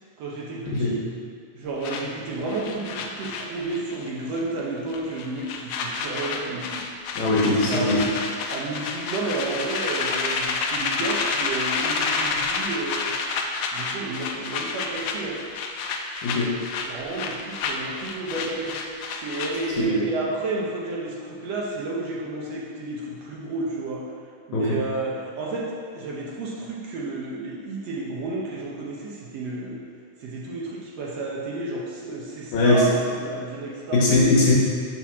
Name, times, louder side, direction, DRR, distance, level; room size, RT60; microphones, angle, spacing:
voice 1, 0.2-1.0 1.5-6.8 7.2-8.0 8.5-13.1 13.7-15.4 16.8-18.8 19.2-24.1 24.5-29.8 30.2-34.0, right 3 dB, 70° right, -3 dB, 1.6 m, -31 dB
sound 1, 1.8-4.1 4.3-4.6 4.9-19.8, left 4 dB, 90° left, 1.5 m, -29 dB
voice 2, 7.2-8.0 16.2-16.5 19.8-20.0 24.5-24.8 32.5-32.9 33.9-34.5, left 2 dB, 70° left, -6 dB, 2.3 m, -20 dB
5.9 x 4.3 x 6.0 m, 2.1 s
omnidirectional pair, 3.7 m